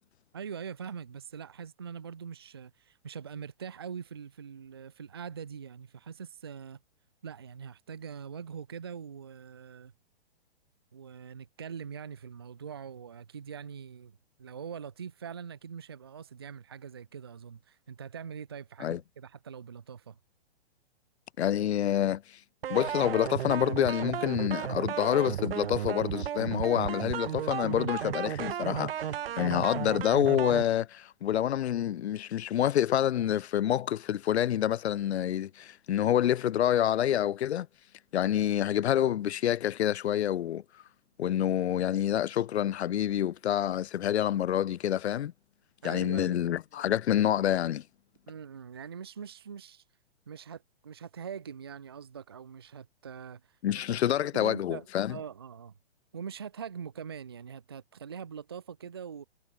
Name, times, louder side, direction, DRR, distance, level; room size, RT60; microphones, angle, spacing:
voice 1, 0.3-6.8 7.2-9.9 10.9-20.2 45.8-46.4 48.3-49.8 50.3-53.6 53.9-54.0 54.3-55.7 56.1-59.3, right 7 dB, 25° right, 0.4 m, -43 dB
voice 2, 21.4-22.4 22.7-29.1 29.4-37.7 38.1-40.6 41.2-45.3 45.8-47.8 53.6-55.2, left 11 dB, 90° left, 0.7 m, -27 dB
sound 1, 22.6-30.6, right 10 dB, 65° right, 0.9 m, -34 dB
hypercardioid pair, 175°, 32 cm